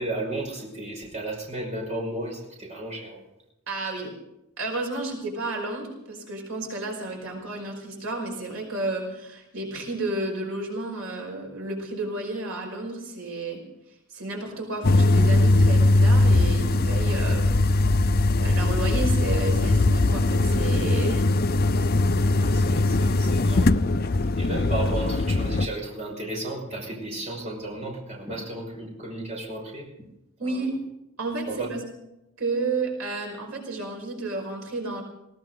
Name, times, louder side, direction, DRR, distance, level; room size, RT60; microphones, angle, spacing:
voice 1, 0.0-3.2 22.4-23.7 24.0-29.9 30.4-30.5 31.5-31.7, right 1 dB, 30° right, -2 dB, 5.7 m, -34 dB
voice 2, 3.7-4.1 4.6-13.6 14.1-17.5 18.4-21.3 30.4-30.7 31.2-31.8 32.4-35.0, right 2 dB, 80° right, 0 dB, 5.3 m, -31 dB
sound 1, 14.8-25.7, left 2 dB, 45° left, 0.6 m, -20 dB
20.0 x 18.5 x 3.9 m, 0.87 s
head